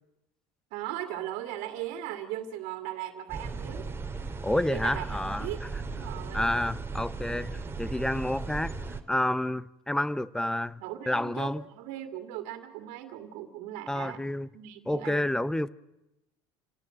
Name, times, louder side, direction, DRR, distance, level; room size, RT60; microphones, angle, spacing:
voice 1, 0.7-3.9 4.7-6.5 10.8-14.2 14.5-15.3, right 12 dB, 75° right, 2.3 m, -38 dB
sound 1, 3.3-9.0, right 4 dB, 20° right, 2.3 m, -36 dB
voice 2, 4.4-5.5 6.3-8.7 9.1-11.6 13.9-14.5 14.9-15.7, left 1 dB, 5° left, 0.9 m, -29 dB
28.5 x 17.5 x 7.7 m
supercardioid pair, 105°, 13 cm